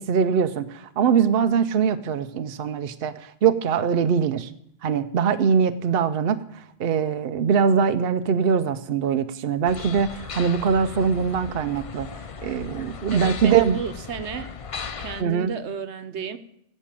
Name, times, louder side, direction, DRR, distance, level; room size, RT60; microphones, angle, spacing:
voice 1, 0.0-4.5 4.8-12.1 12.4-13.8 15.2-15.5, right 6 dB, 60° right, 9 dB, 0.8 m, -22 dB
sound 1, 9.6-15.2, left 6 dB, 40° left, 0.5 m, -37 dB
voice 2, 13.1-14.5 15.0-16.4, right 6 dB, 80° right, 10 dB, 1.2 m, -33 dB
17.0 x 6.5 x 7.5 m, 0.74 s
omnidirectional pair, 1.1 m